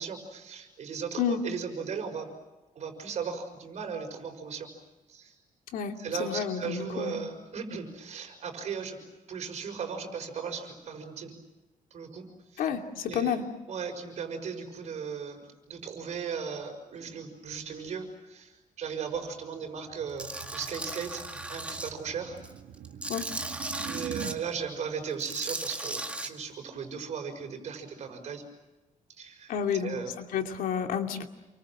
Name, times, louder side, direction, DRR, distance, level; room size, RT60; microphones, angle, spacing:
voice 1, 0.0-2.3 2.7-4.7 5.1-5.4 6.0-9.0 9.3-11.3 11.9-12.3 12.5-12.6 13.1-13.4 13.7-21.2 21.5-22.4 23.8-28.4 29.1-29.5 29.8-30.1, right 6 dB, 55° right, 4 dB, 6.0 m, -37 dB
voice 2, 5.7-7.2 12.6-13.4 23.1-23.2 29.5-31.2, left 8 dB, 90° left, 5 dB, 2.6 m, -30 dB
sound 1, 19.1-24.4, right 9 dB, 85° right, 2.6 m, -44 dB
Tools, 20.2-21.9 22.4-24.3 25.1-26.3, right 2 dB, 10° right, 2.0 m, -36 dB
29.5 x 24.0 x 7.6 m, 1.1 s
cardioid pair, 145°, 14 cm